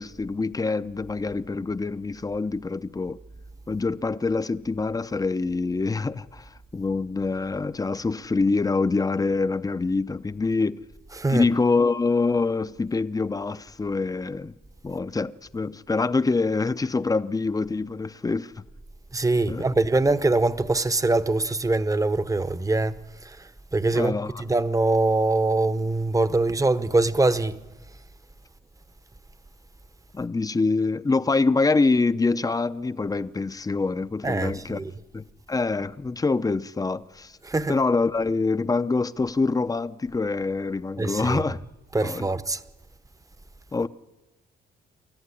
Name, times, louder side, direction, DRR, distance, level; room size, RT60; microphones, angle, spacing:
voice 1, 0.0-3.2 3.7-10.8 11.3-14.5 14.8-18.6 19.5-19.6 23.9-24.4 30.1-34.8 35.1-37.3 37.7-41.6 42.0-42.3 43.7-43.9, left 3 dB, 20° left, 0.7 m, -25 dB
voice 2, 19.1-23.4 23.7-27.6 34.2-34.9 37.4-37.7 41.0-41.4 41.9-42.6, right 2 dB, 15° right, 1.0 m, -23 dB
27.5 x 14.0 x 9.9 m
cardioid pair, 90°, 20 cm